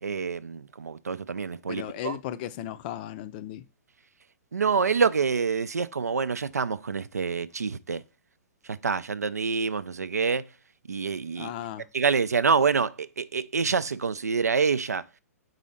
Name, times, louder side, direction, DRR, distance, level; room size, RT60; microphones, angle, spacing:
voice 1, 0.0-2.2 4.5-8.0 8.6-10.5 10.9-11.5 11.9-15.1, right 5 dB, 80° right, 0.4 m, -26 dB
voice 2, 1.7-3.6 11.4-11.9, left 12 dB, 35° left, 0.5 m, -35 dB
4.8 x 3.8 x 5.4 m
figure-of-eight pair, 120°, 8 cm